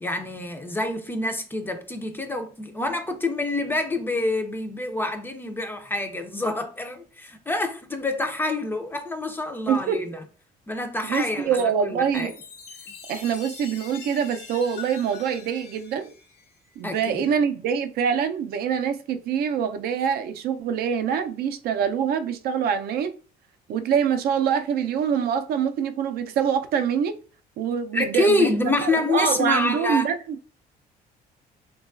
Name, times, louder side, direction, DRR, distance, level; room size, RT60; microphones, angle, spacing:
voice 1, 0.0-10.2 10.7-12.3 16.8-17.3 27.9-30.0, left 2 dB, 10° left, 0.4 m, -27 dB
voice 2, 11.0-12.3 13.1-16.1 16.8-23.1 23.7-27.1 27.6-28.5 28.8-30.1, right 7 dB, 65° right, 0.4 m, -25 dB
Chime, 12.1-16.8, left 6 dB, 75° left, 0.9 m, -43 dB
3.0 x 2.3 x 2.4 m
cardioid pair, 110°, 17 cm